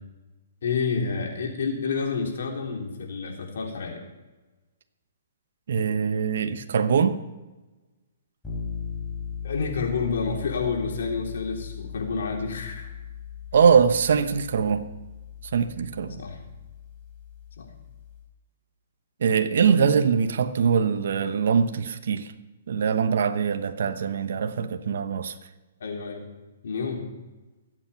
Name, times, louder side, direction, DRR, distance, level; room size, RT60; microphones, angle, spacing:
voice 1, 0.6-4.0 9.4-12.9 16.2-16.4 17.6-17.7 25.8-26.2 26.6-27.1, left 5 dB, 70° left, 1 dB, 3.6 m, -29 dB
voice 2, 5.7-7.2 13.5-14.9 15.5-16.2 19.2-22.3 22.7-25.3, right 6 dB, 65° right, 8 dB, 1.0 m, -22 dB
sound 1, 8.4-18.3, left 7 dB, 10° left, 4.2 m, -38 dB
22.0 x 8.5 x 5.8 m, 1.1 s
hypercardioid pair, 150°, 0 cm